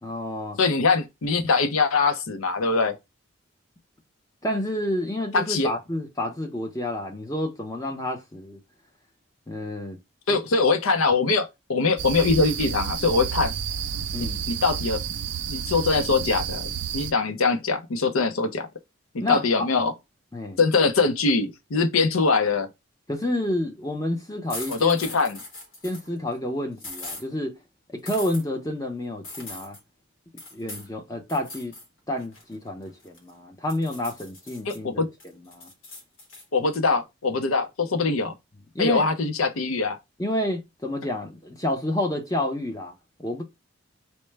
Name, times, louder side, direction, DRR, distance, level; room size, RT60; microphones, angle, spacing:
voice 1, 0.0-0.6 4.4-8.6 9.5-10.0 10.3-10.4 14.1-14.4 19.2-19.7 20.3-20.6 23.1-25.0 25.8-27.6 27.9-29.8 30.5-31.7 32.1-35.7 38.7-39.0 40.2-43.4, left 1 dB, 15° left, 0.6 m, -29 dB
voice 2, 0.6-3.0 5.3-5.7 10.3-13.5 14.5-15.0 15.5-18.7 19.3-19.9 20.6-22.7 24.7-25.4 34.7-35.1 36.5-38.3 38.8-40.0, left 4 dB, 90° left, 0.6 m, -22 dB
the under world, 12.0-17.1, right 8 dB, 60° right, 0.4 m, -30 dB
Cutlery Silverware, 24.5-26.1 26.8-27.2 28.1-28.4 29.2-29.8 30.4-30.9 31.3-31.9 32.2-33.3 33.7-34.8 35.2-36.4, left 2 dB, 70° left, 1.2 m, -40 dB
4.4 x 2.1 x 3.2 m
head